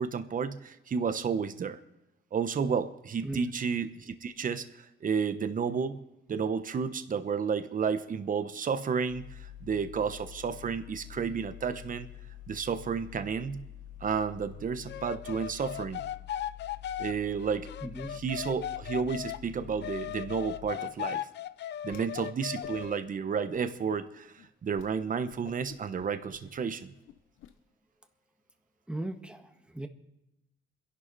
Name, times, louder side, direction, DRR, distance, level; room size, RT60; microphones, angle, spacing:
voice 1, 0.0-1.8 2.3-6.0 6.3-9.3 9.6-12.1 12.5-13.6 14.0-16.0 17.0-17.7 18.1-21.3 21.8-24.3 24.6-26.9, right 6 dB, 45° right, 10 dB, 1.1 m, -31 dB
sound 1, 9.1-20.7, left 12 dB, 40° left, 1.9 m, -48 dB
sound 2, 14.9-19.4 19.8-23.0, left 10 dB, 60° left, 0.5 m, -37 dB
voice 2, 17.8-18.2 28.9-29.5 29.7-29.9, right 1 dB, 5° right, 6 dB, 1.6 m, -37 dB
Whoosh swoosh swish, 21.8-22.3 22.6-23.1 23.5-24.0 24.4-24.5 24.7-24.9 25.3-27.5, left 10 dB, 80° left, 0.9 m, -51 dB
28.0 x 11.5 x 4.1 m, 0.90 s
cardioid pair, 90°, 20 cm